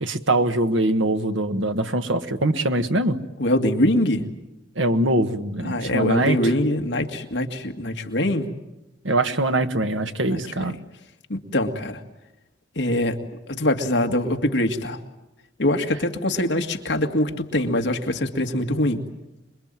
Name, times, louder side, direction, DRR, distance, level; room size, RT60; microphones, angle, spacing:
voice 1, 0.0-3.2 4.7-6.4 9.0-10.7, right 1 dB, 85° right, 8 dB, 1.5 m, -23 dB
voice 2, 3.4-4.2 5.6-8.5 10.3-10.7 11.3-12.0 12.8-13.2 13.5-15.0 15.6-19.0, left 1 dB, 70° left, 5 dB, 2.1 m, -23 dB
26.5 x 22.5 x 9.1 m, 0.95 s
head